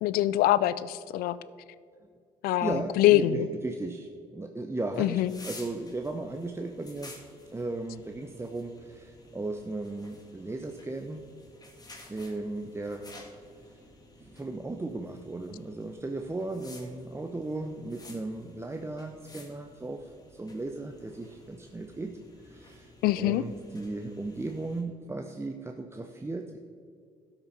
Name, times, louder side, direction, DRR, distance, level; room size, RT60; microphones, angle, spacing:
voice 1, 0.0-1.4 2.4-3.5 5.0-5.3 23.0-23.4, left 14 dB, 70° left, 17 dB, 0.4 m, -24 dB
voice 2, 2.6-7.1 7.5-11.2 12.1-13.0 14.2-22.1 22.4-26.6, right 2 dB, 15° right, 5 dB, 0.8 m, -36 dB
sound 1, 4.9-24.8, left 2 dB, 25° left, 2.4 m, -52 dB
12.5 x 5.9 x 5.5 m, 2.3 s
hypercardioid pair, 55°, 16 cm